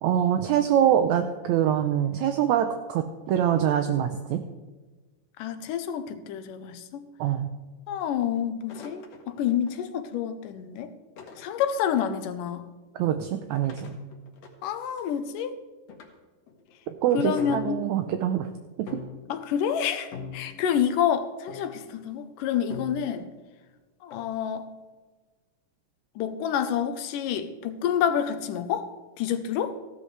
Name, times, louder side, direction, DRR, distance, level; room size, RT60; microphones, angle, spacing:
voice 1, 0.0-4.4 7.2-7.5 13.0-14.0 17.0-18.5 18.8-18.9, right 10 dB, 75° right, 7 dB, 1.8 m, -24 dB
voice 2, 5.4-7.1 7.9-10.9 11.4-12.7 14.6-15.6 17.1-17.8 19.3-23.3 24.0-24.7 26.2-29.8, left 9 dB, 85° left, 9 dB, 2.4 m, -28 dB
sound 1, 8.7-9.8 11.2-12.2 13.5-15.2 15.9-16.1 16.5-16.7 17.4-18.1 18.9-19.4 20.1-20.8 21.5-21.9 22.7-23.3 24.1-24.3, left 6 dB, 55° left, 2.4 m, -41 dB
15.5 x 12.0 x 3.3 m, 1.3 s
omnidirectional pair, 3.7 m